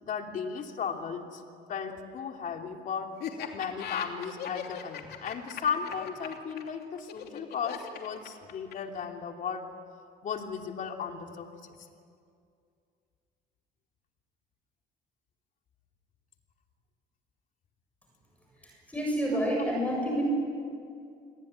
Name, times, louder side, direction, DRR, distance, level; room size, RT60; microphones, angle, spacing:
voice 1, 0.0-1.4 1.7-3.1 3.5-9.6 10.2-11.7, left 6 dB, 50° left, 3 dB, 3.1 m, -35 dB
Laughter, 3.2-9.0, left 9 dB, 70° left, 2.9 m, -39 dB
voice 2, 18.6-20.2, equal, 10° left, -1 dB, 7.7 m, -29 dB
28.5 x 21.0 x 10.0 m, 2.3 s
cardioid pair, 110°, 17 cm